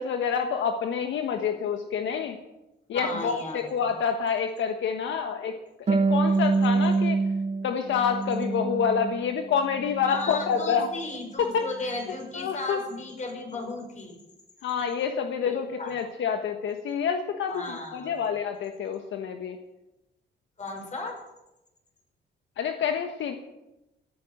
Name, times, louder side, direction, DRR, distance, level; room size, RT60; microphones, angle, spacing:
voice 1, 0.0-2.4 2.9-5.6 5.9-7.2 7.6-10.9 11.5-11.6 12.3-12.8 14.6-19.6 22.6-23.3, left 7 dB, 70° left, 5 dB, 1.3 m, -28 dB
voice 2, 2.9-4.0 6.3-6.5 10.0-14.2 15.4-15.9 17.5-18.2 20.6-21.2, left 2 dB, 35° left, 2 dB, 6.4 m, -35 dB
Harp, 5.9-9.3 9.6-10.7, right 4 dB, 35° right, 1.5 m, -26 dB
17.0 x 9.7 x 7.7 m, 0.96 s
cardioid pair, 90°, 20 cm